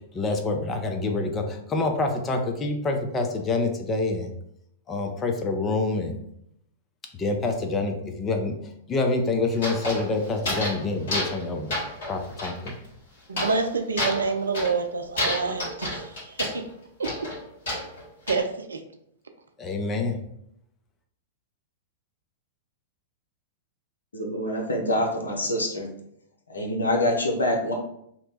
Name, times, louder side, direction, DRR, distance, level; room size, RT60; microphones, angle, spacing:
voice 1, 0.1-4.3 4.9-6.2 7.1-8.6 8.9-11.8 12.1-12.7 19.6-20.2, left 3 dB, 25° left, 4 dB, 0.6 m, -27 dB
sound 1, 9.5-10.8 11.1-11.5 11.7-12.7 13.4-13.7 14.0-14.8 15.2-16.6 17.0-18.4, left 1 dB, 65° left, 1.4 m, -30 dB
voice 2, 13.3-16.6 17.0-17.3 18.3-18.8, right 4 dB, 80° right, 6 dB, 0.4 m, -27 dB
voice 3, 24.1-25.9 26.5-27.7, left 1 dB, 85° left, 0 dB, 0.8 m, -25 dB
3.0 x 2.2 x 4.0 m, 0.75 s
figure-of-eight pair, 105°, 0 cm